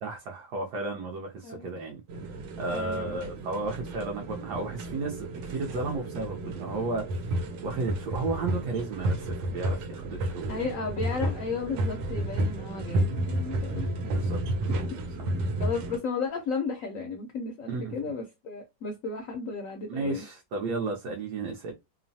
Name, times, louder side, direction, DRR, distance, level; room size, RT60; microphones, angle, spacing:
voice 1, 0.0-7.3 7.6-10.7 14.1-14.8 15.3-15.4 17.7-18.0 19.9-21.7, right 3 dB, 75° right, 1.1 m, -34 dB
sound 1, 2.1-16.0, right 1 dB, 90° right, 1.3 m, -32 dB
voice 2, 2.7-3.2 10.5-14.1 15.6-20.2, left 4 dB, 75° left, 0.7 m, -34 dB
3.0 x 2.0 x 2.6 m
omnidirectional pair, 1.9 m